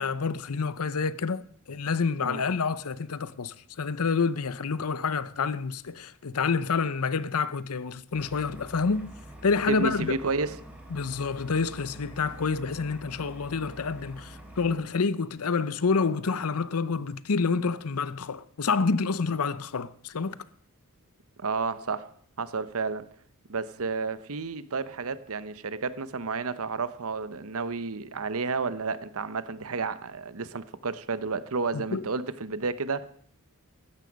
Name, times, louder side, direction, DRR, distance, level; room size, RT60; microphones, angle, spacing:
voice 1, 0.0-9.1 9.4-10.2 10.9-20.4 31.7-32.0, left 4 dB, 75° left, 0.7 m, -28 dB
sound 1, 8.1-14.8, right 1 dB, 5° right, 4.0 m, -46 dB
voice 2, 9.7-10.6 21.4-22.1 22.4-23.1 23.5-33.1, right 4 dB, 70° right, 0.9 m, -31 dB
15.5 x 12.5 x 5.2 m
head